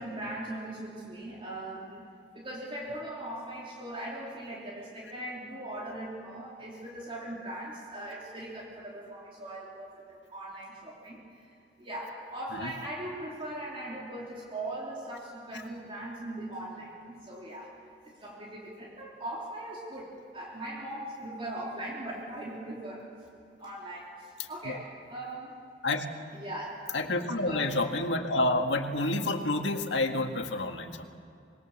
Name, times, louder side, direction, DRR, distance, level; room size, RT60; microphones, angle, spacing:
voice 1, 0.0-2.0 2.3-11.5 11.8-17.7 18.0-23.3 23.6-25.7 26.3-27.0 27.3-27.8, right 1 dB, 30° right, -4 dB, 3.4 m, -40 dB
voice 2, 24.4-24.8 25.8-26.1 26.9-31.0, left 2 dB, 85° left, 5 dB, 1.9 m, -29 dB
26.5 x 22.0 x 7.3 m, 2.5 s
head